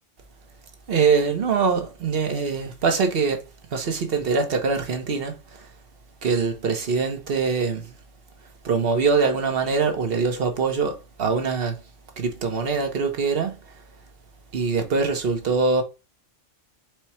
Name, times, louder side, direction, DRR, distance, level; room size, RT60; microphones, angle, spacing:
voice 1, 0.9-3.4 3.7-5.7 6.2-8.0 8.6-11.8 12.2-13.8 14.5-15.8, right 5 dB, 50° right, 1.1 m, -23 dB
4.8 x 2.3 x 4.3 m
omnidirectional pair, 1.3 m